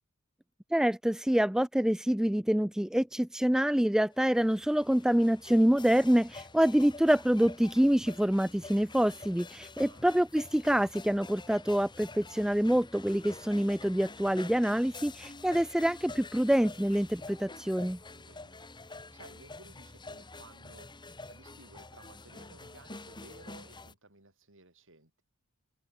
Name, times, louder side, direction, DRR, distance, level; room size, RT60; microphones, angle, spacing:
voice 1, 0.7-18.0, equal, 5° right, 0.3 m, -26 dB
sound 1, 4.1-23.9, left 3 dB, 20° left, 2.5 m, -48 dB
voice 2, 9.8-10.1 18.2-18.6 19.1-20.9 21.3-25.2, right 2 dB, 60° right, 6.8 m, -56 dB
head